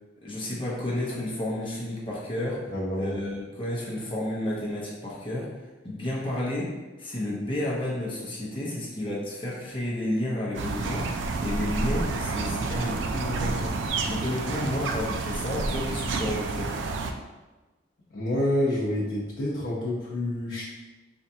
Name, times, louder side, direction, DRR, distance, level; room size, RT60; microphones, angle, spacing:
voice 1, 0.2-2.7 3.0-5.5 5.8-6.7 7.0-16.7, left 1 dB, 25° left, -6 dB, 0.8 m, -31 dB
voice 2, 2.7-3.2 18.1-20.6, left 1 dB, 80° left, -8 dB, 0.7 m, -28 dB
sound 1, 10.5-17.1, right 3 dB, 85° right, 0.3 m, -29 dB
4.3 x 2.4 x 2.7 m, 1.2 s
head